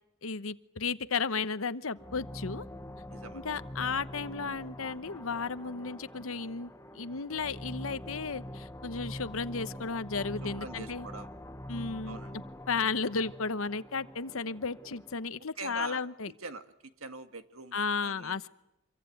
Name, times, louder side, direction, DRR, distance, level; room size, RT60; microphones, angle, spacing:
voice 1, 0.2-2.7 3.3-11.1 11.7-12.4 12.7-16.3 17.7-18.5, left 4 dB, 80° left, 13 dB, 1.0 m, -34 dB
sound 1, 2.0-15.3, left 1 dB, 15° left, 1.0 m, -44 dB
voice 2, 3.1-3.4 10.4-11.3 12.0-12.3 15.6-16.6 17.0-17.8 18.0-18.4, right 3 dB, 85° right, 9 dB, 1.9 m, -43 dB
26.5 x 23.5 x 9.2 m, 0.83 s
head